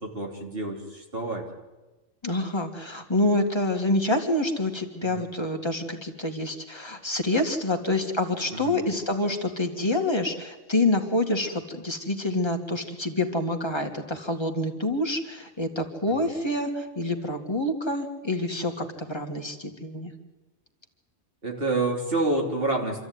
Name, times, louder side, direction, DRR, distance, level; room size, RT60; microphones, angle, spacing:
voice 1, 0.0-1.5 5.0-5.2 8.5-8.8 16.1-16.2 21.4-23.0, right 2 dB, 50° right, 0 dB, 3.4 m, -28 dB
voice 2, 2.2-20.1, left 1 dB, 20° left, 3 dB, 2.2 m, -27 dB
26.5 x 13.5 x 9.7 m, 1.2 s
omnidirectional pair, 1.3 m